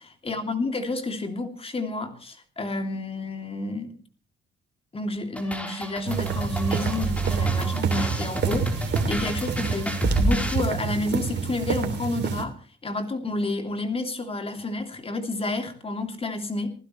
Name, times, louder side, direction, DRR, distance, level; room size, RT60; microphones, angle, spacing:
voice 1, 0.2-4.0 4.9-12.5 12.8-16.7, left 2 dB, 30° left, 6 dB, 2.8 m, -30 dB
sound 1, 5.3-10.6, right 1 dB, 5° left, 3.9 m, -30 dB
sound 2, 6.1-12.4, right 6 dB, 60° right, 2.8 m, -27 dB
27.0 x 15.5 x 3.2 m, 0.39 s
cardioid pair, 90°, 20 cm